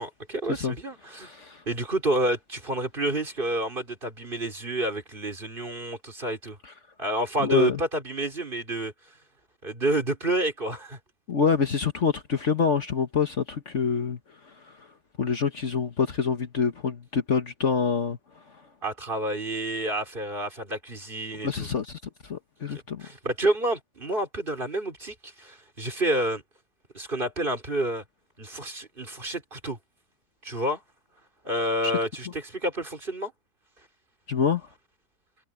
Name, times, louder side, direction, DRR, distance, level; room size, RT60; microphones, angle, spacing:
voice 1, 0.0-1.3 1.7-6.6 7.0-8.9 9.6-11.0 18.8-21.7 22.7-26.4 26.9-28.0 28.4-29.8 30.4-30.8 31.4-33.3, right 1 dB, 30° right, 3.9 m, -29 dB
voice 2, 1.2-1.6 7.4-7.8 11.3-14.2 15.2-18.2 21.4-22.0 22.3-23.0 31.8-31.9 34.3-34.7, left 6 dB, 50° left, 1.5 m, -26 dB
omnidirectional pair, 1.7 m